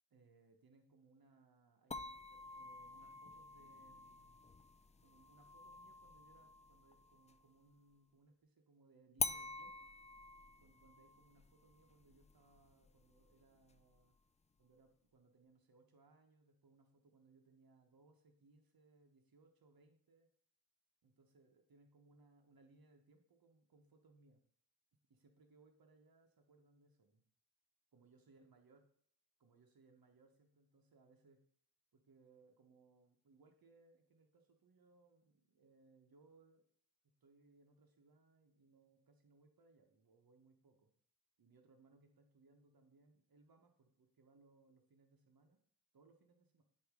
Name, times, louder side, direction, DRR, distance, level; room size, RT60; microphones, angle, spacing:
voice 1, 0.1-4.6 5.0-9.9 10.6-14.2 14.6-20.3 21.0-24.4 25.1-27.2 27.9-28.9 29.4-31.4 31.9-36.6 37.0-40.9 41.4-45.6 45.9-46.6, right 3 dB, 75° right, 4 dB, 1.2 m, -69 dB
sound 1, 1.9-7.5 9.2-14.2, left 3 dB, 20° left, 0.4 m, -48 dB
8.0 x 3.1 x 5.0 m, 0.62 s
cardioid pair, 45°, 36 cm